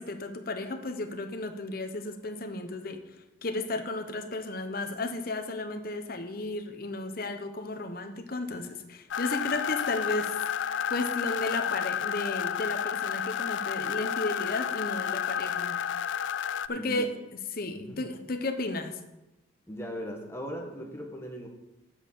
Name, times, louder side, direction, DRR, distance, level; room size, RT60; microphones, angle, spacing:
voice 1, 0.0-3.0 3.4-10.4 10.9-15.8 16.7-17.1 17.5-19.0, left 2 dB, 50° left, 7 dB, 0.9 m, -34 dB
sound 1, 9.1-16.7, left 8 dB, 70° left, 0.3 m, -31 dB
voice 2, 16.7-17.1 17.7-18.1 19.7-21.5, equal, 15° left, 1 dB, 1.4 m, -38 dB
8.1 x 6.4 x 7.5 m, 1.0 s
head